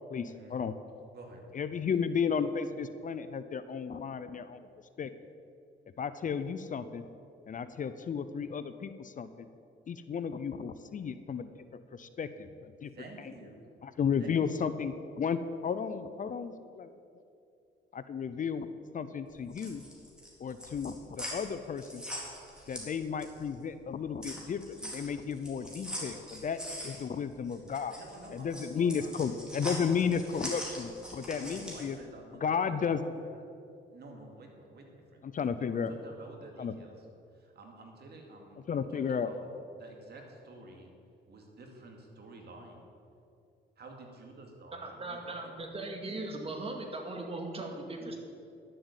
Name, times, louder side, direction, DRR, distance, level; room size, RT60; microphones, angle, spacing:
voice 1, 0.1-0.7 1.5-4.6 5.0-5.1 6.0-7.0 7.5-9.5 9.9-11.6 11.9-12.9 13.8-16.9 17.9-18.7 18.9-19.8 20.4-22.0 22.7-28.0 28.3-32.0 32.4-33.0 35.2-35.9 36.6-36.7 38.7-39.3, left 6 dB, 40° left, 12 dB, 0.6 m, -33 dB
voice 2, 1.1-1.4 12.9-13.7 14.2-14.6 27.8-29.3 31.3-33.4 33.9-35.2 35.6-37.1 37.3-39.5 39.7-40.9 41.3-42.8 43.8-45.5, right 2 dB, 55° right, 1 dB, 2.5 m, -51 dB
sound 1, 19.3-23.5 23.8-31.9, equal, 5° right, 3.6 m, -42 dB
voice 3, 44.8-48.2, right 2 dB, 30° right, 2 dB, 2.1 m, -39 dB
11.0 x 7.8 x 8.1 m, 2.6 s
cardioid pair, 90°, 20 cm